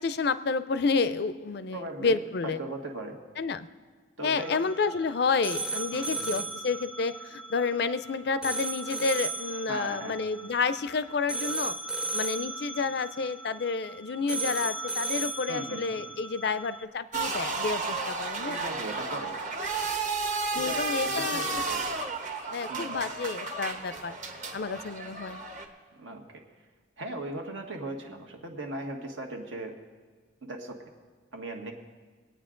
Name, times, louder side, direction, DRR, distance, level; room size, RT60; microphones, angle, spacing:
voice 1, 0.0-2.6 3.4-3.7 4.2-11.8 12.1-18.6 20.5-21.6 22.5-24.2 24.5-25.4, left 4 dB, 55° left, 14 dB, 0.4 m, -30 dB
voice 2, 1.7-3.2 4.2-4.6 5.9-6.4 9.7-10.2 15.5-16.0 18.4-19.4 20.5-21.8 22.7-23.0 26.0-26.4 27.0-29.7 30.4-30.8 31.3-31.7, right 2 dB, 80° right, 2 dB, 1.5 m, -38 dB
sound 1, 4.4-16.8, right 3 dB, 5° right, 0.5 m, -36 dB
sound 2, 17.1-25.7, right 3 dB, 40° right, 1.0 m, -32 dB
22.5 x 9.0 x 3.8 m, 1.5 s
head